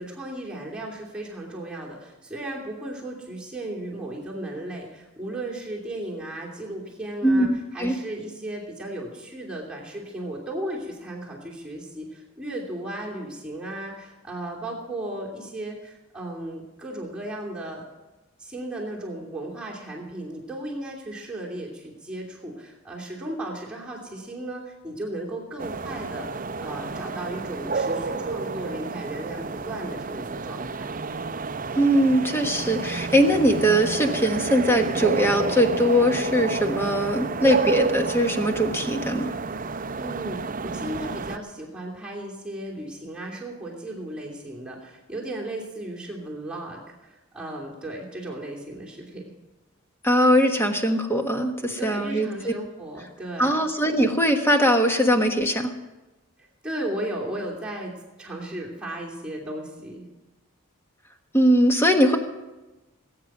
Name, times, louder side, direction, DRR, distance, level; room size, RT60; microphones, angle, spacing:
voice 1, 0.0-17.8 18.4-30.8 40.0-49.3 51.8-53.7 56.6-60.1, right 1 dB, 5° right, -4 dB, 2.8 m, -35 dB
voice 2, 7.2-8.0 31.7-39.3 50.0-52.5 53.4-55.7 61.3-62.2, equal, 10° left, 4 dB, 1.2 m, -21 dB
sound 1, 25.6-41.4, right 4 dB, 40° right, 0.6 m, -30 dB
19.5 x 9.2 x 6.1 m, 1.1 s
head